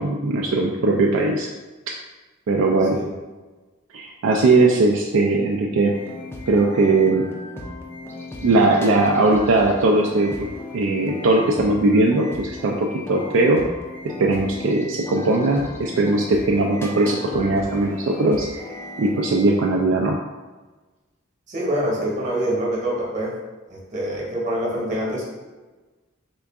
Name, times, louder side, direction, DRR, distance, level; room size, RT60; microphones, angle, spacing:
voice 1, 0.0-1.5 2.5-3.0 3.9-5.9 6.5-7.2 8.4-10.5 10.7-13.6 14.2-20.1, right 2 dB, 65° right, -1 dB, 0.3 m, -19 dB
sound 1, 5.9-19.5, left 2 dB, 10° left, 0.4 m, -36 dB
voice 2, 21.5-23.3 23.7-25.2, right 1 dB, 40° right, -4 dB, 1.0 m, -25 dB
3.7 x 2.3 x 3.5 m, 1.2 s
head